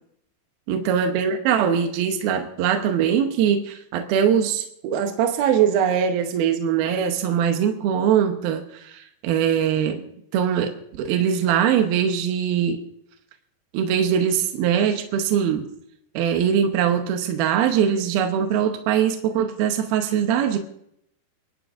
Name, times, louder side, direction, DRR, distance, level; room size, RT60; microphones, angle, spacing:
voice 1, 0.7-10.0 10.3-12.8 13.7-15.7 16.1-20.6, right 8 dB, 80° right, 6 dB, 2.7 m, -22 dB
29.0 x 11.5 x 2.5 m, 0.73 s
omnidirectional pair, 4.5 m